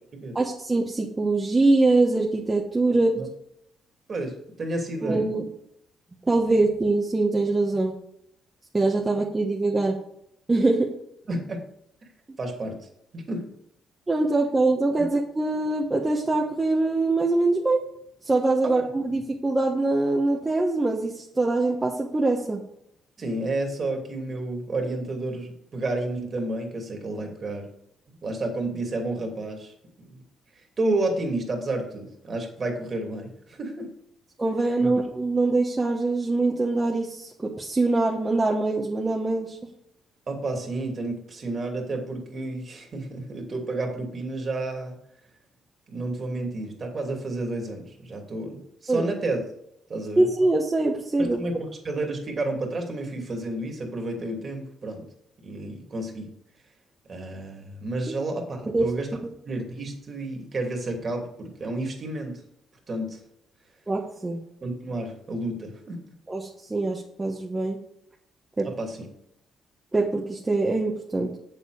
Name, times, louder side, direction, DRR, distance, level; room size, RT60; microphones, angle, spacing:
voice 1, 0.3-3.2 5.0-5.4 6.3-7.9 8.7-10.0 10.5-10.9 14.1-17.8 18.2-22.6 34.4-39.6 48.9-49.0 50.2-51.4 58.1-58.2 58.7-58.9 59.2-59.3 63.9-64.4 66.3-67.8 68.6-68.7 69.9-71.3, right 2 dB, 20° right, -2 dB, 1.3 m, -23 dB
voice 2, 4.1-5.3 11.3-11.7 12.4-12.8 13.1-13.5 18.6-18.7 23.2-27.7 28.2-29.7 30.0-30.2 30.6-33.9 34.8-34.9 40.3-44.9 45.9-49.4 49.9-50.3 51.2-55.0 55.4-56.3 57.1-59.1 59.5-62.3 62.9-63.2 64.6-66.0 68.6-69.1, right 2 dB, 40° right, 2 dB, 2.7 m, -31 dB
8.0 x 7.1 x 5.0 m, 0.74 s
cardioid pair, 90°, 0 cm